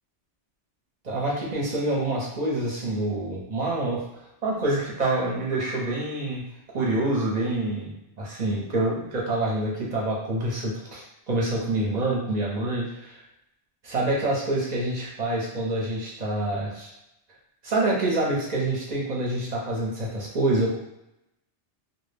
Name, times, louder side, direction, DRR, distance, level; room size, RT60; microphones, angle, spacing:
voice 1, 1.0-4.0 4.4-6.4 6.7-12.9 13.8-16.9 17.6-20.8, right 2 dB, 45° right, -4 dB, 0.7 m, -26 dB
2.2 x 2.1 x 3.2 m, 0.86 s
omnidirectional pair, 1.2 m